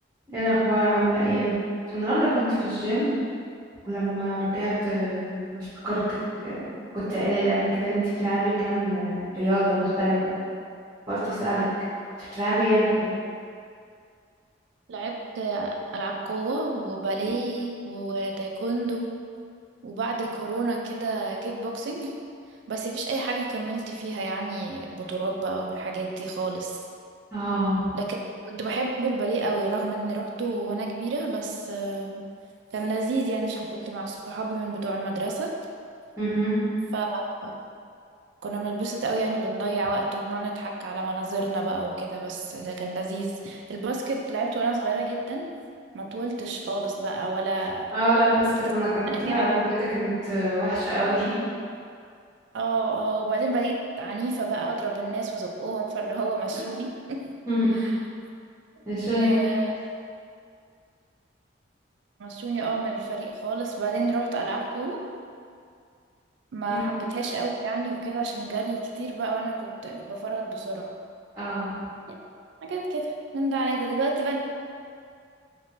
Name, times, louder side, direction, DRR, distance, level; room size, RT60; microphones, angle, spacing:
voice 1, 0.3-1.5 1.9-3.1 3.8-6.2 6.4-6.5 6.9-10.3 11.1-11.7 12.2-13.1 27.3-27.9 36.2-36.6 47.9-49.6 49.9-51.3 57.5-57.8 58.9-59.3 66.7-66.8 71.3-71.7, right 1 dB, 15° right, -14 dB, 0.9 m, -25 dB
voice 2, 14.9-19.1 19.8-22.2 22.7-26.8 27.9-28.2 28.5-32.2 32.7-35.5 36.9-37.6 38.4-45.5 45.9-47.9 49.1-49.6 52.5-57.3 57.7-57.9 58.8-59.7 62.2-65.0 66.5-70.9 72.1-72.2 72.6-74.4, right 3 dB, 70° right, 0 dB, 0.4 m, -29 dB
3.0 x 2.5 x 3.0 m, 2.3 s
head